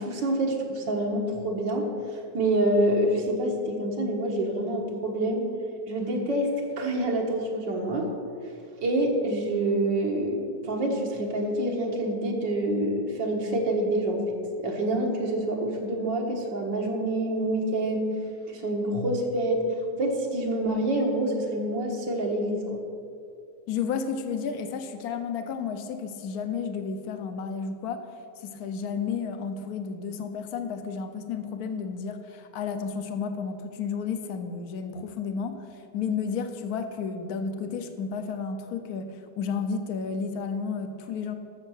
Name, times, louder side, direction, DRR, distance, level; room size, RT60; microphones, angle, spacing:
voice 1, 0.0-1.9 2.3-5.5 5.9-8.1 8.8-14.3 14.6-18.1 18.5-19.7 19.9-22.8, right 1 dB, 75° right, 1 dB, 2.1 m, -27 dB
voice 2, 23.7-28.1 28.4-41.4, left 6 dB, 60° left, 8 dB, 1.3 m, -32 dB
13.0 x 6.6 x 6.4 m, 2.4 s
omnidirectional pair, 2.0 m